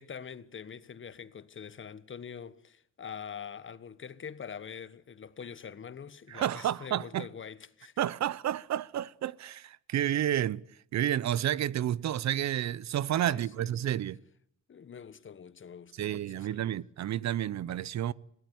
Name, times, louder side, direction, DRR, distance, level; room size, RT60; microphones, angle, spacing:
voice 1, 0.0-7.9 13.2-13.9 14.7-16.7, left 7 dB, 40° left, 1.3 m, -45 dB
voice 2, 6.3-7.3 8.0-10.6 10.9-14.2 16.0-18.1, right 11 dB, 65° right, 0.9 m, -30 dB
21.0 x 17.5 x 9.6 m
cardioid pair, 90°, 30 cm